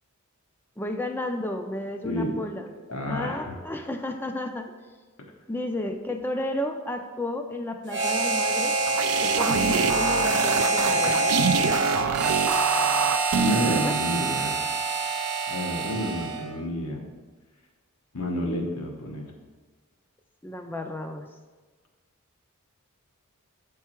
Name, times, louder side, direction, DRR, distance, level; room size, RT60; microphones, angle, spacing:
voice 1, 0.8-2.7 3.0-4.7 5.5-8.8 9.2-11.2 13.8-13.9 20.4-21.3, left 1 dB, 10° left, 5 dB, 0.4 m, -32 dB
voice 2, 2.0-2.3 2.9-3.5 13.3-14.6 15.5-17.0 18.1-19.3, equal, 85° left, 1 dB, 1.2 m, -30 dB
Harmonica, 7.9-16.5, right 3 dB, 55° right, 0.7 m, -26 dB
sound 1, 8.6-13.8, right 6 dB, 90° right, 0.4 m, -26 dB
7.7 x 4.6 x 4.4 m, 1.4 s
head